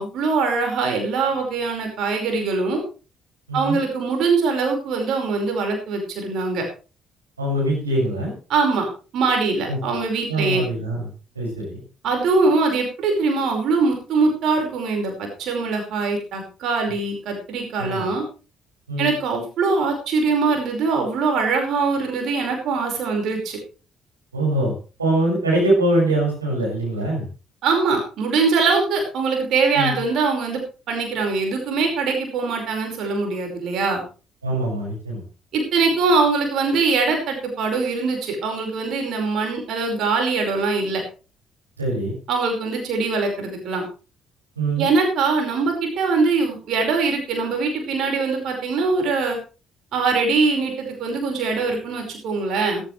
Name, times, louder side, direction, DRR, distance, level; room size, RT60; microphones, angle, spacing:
voice 1, 0.0-2.8 3.5-6.6 8.5-8.9 9.1-10.6 12.0-18.2 19.0-23.6 27.6-30.6 30.9-34.0 35.5-41.0 42.3-43.8 44.8-49.4 49.9-52.8, right 4 dB, 55° right, 3 dB, 5.1 m, -22 dB
voice 2, 7.4-8.3 9.6-9.8 10.3-11.1 11.3-11.8 17.8-18.0 18.9-19.1 24.3-27.2 29.7-29.9 34.4-35.2 41.8-42.1 44.6-44.9, right 1 dB, 85° right, -4 dB, 6.2 m, -23 dB
15.0 x 15.0 x 3.3 m, 0.34 s
figure-of-eight pair, 45°, 0 cm